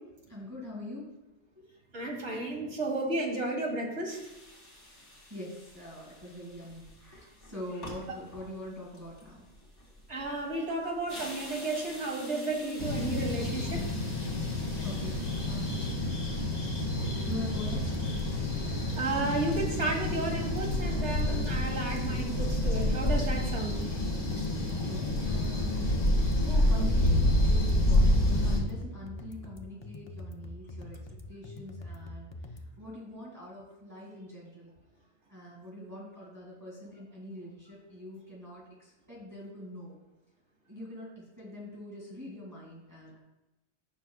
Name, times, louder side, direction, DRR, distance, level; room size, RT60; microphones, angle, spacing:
voice 1, 0.3-1.1 1.5-1.7 4.8-9.5 14.8-16.2 17.0-17.9 24.7-31.0 31.3-34.7 35.3-40.0 40.7-43.2, left 1 dB, 15° right, -6 dB, 2.4 m, -44 dB
voice 2, 1.9-4.2 10.1-13.8 19.0-23.9, right 2 dB, 75° right, -1 dB, 2.2 m, -33 dB
sound 1, 4.1-15.9, left 1 dB, 85° left, 2.8 m, -49 dB
sound 2, 12.8-28.6, left 1 dB, 70° left, 2.1 m, -28 dB
sound 3, 16.7-32.7, left 1 dB, 30° left, 0.5 m, -44 dB
15.5 x 6.2 x 2.4 m, 0.98 s
omnidirectional pair, 1.2 m